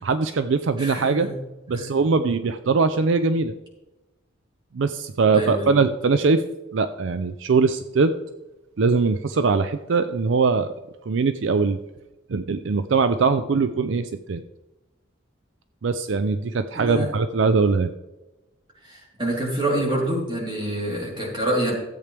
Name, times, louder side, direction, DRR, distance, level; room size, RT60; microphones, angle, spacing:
voice 1, 0.0-1.3 1.7-3.5 4.7-6.4 6.7-8.1 8.8-10.7 11.1-11.8 12.3-14.4 15.8-17.9, right 4 dB, 70° right, 11 dB, 0.4 m, -21 dB
voice 2, 0.8-1.4 1.7-1.9 5.3-5.7 16.7-17.1 18.8-21.7, right 1 dB, 25° right, -3 dB, 3.6 m, -26 dB
14.0 x 8.2 x 3.4 m, 1.0 s
head